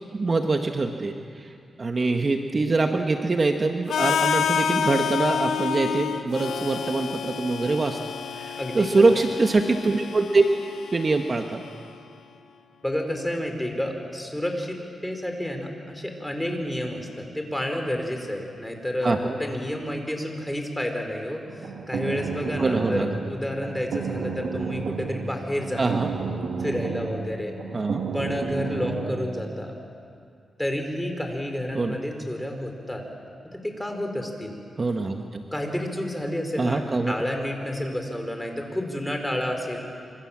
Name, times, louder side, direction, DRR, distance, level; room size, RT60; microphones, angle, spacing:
voice 1, 0.1-1.1 1.8-8.0 8.4-10.4 10.9-11.6 19.0-19.3 22.6-23.1 25.8-26.1 27.7-28.0 31.7-32.0 34.8-35.4 36.6-37.1, right 3 dB, 40° right, 4 dB, 1.5 m, -23 dB
Harmonica, 3.9-11.8, left 7 dB, 90° left, 1.1 m, -29 dB
voice 2, 8.6-8.9 12.8-25.8 26.6-27.5 28.1-29.7 30.6-33.0 33.5-34.5 35.5-39.8, left 1 dB, 10° left, 3 dB, 5.1 m, -30 dB
Running up train station steps metal echo EQ, 21.5-29.3, right 5 dB, 80° right, 2.3 m, -32 dB
26.5 x 26.0 x 7.6 m, 2.4 s
cardioid pair, 80°, 0 cm